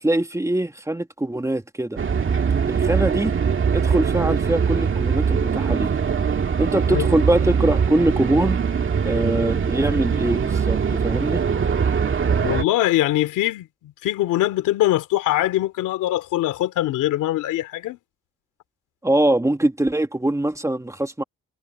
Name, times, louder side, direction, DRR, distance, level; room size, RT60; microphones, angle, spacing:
voice 1, 0.0-2.0 2.7-3.4 3.7-5.9 6.6-8.6 9.0-11.4 19.0-21.2, right 1 dB, 10° right, 1.6 m, -23 dB
sound 1, 2.0-12.6, right 6 dB, 40° right, 2.2 m, -22 dB
voice 2, 12.4-13.7 14.0-18.0, left 14 dB, 90° left, 2.6 m, -22 dB
cardioid pair, 90°, 30 cm